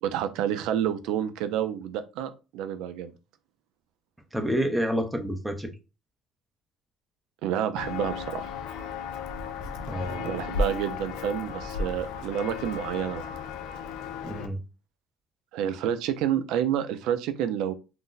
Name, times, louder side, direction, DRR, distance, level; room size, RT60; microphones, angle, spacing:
voice 1, 0.0-3.1 7.4-8.5 10.2-13.3 15.5-17.7, right 10 dB, 80° right, 0.3 m, -29 dB
voice 2, 4.3-5.7 9.9-10.3 14.2-14.6, equal, 5° right, 0.5 m, -28 dB
Walk footsteps, 7.8-14.5, left 4 dB, 85° left, 0.4 m, -34 dB
2.5 x 2.0 x 3.8 m
cardioid pair, 155°, 0 cm